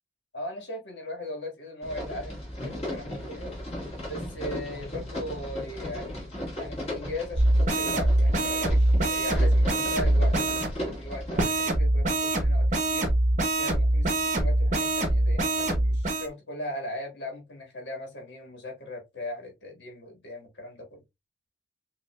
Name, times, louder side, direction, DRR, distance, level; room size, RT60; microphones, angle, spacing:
voice 1, 0.3-3.5 4.1-6.3 6.6-10.3 10.8-13.1 13.6-21.0, left 1 dB, 60° left, 1.6 m, -38 dB
sound 1, 1.8-11.4, left 1 dB, 35° left, 1.8 m, -36 dB
sound 2, 7.3-10.7 11.4-16.3, right 1 dB, 40° right, 0.8 m, -23 dB
5.5 x 2.6 x 2.3 m
head